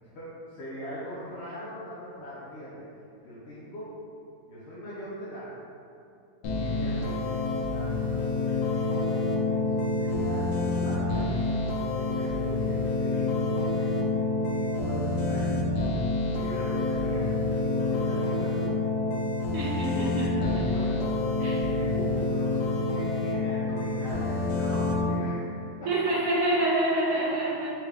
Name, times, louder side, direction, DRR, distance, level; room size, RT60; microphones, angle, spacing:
voice 1, 0.0-2.9 3.2-3.9 4.5-5.5 6.5-13.9 14.5-15.6 16.3-17.3 17.6-18.6 19.9-21.1 21.4-25.9 26.3-26.6 27.3-27.4, equal, 60° left, -10 dB, 0.7 m, -41 dB
sound 1, 6.4-25.1, left 2 dB, 80° left, 1.2 m, -27 dB
voice 2, 19.5-20.3 21.4-21.5 25.9-27.7, right 2 dB, 65° right, -6 dB, 1.0 m, -26 dB
4.5 x 2.4 x 3.3 m, 2.7 s
omnidirectional pair, 1.8 m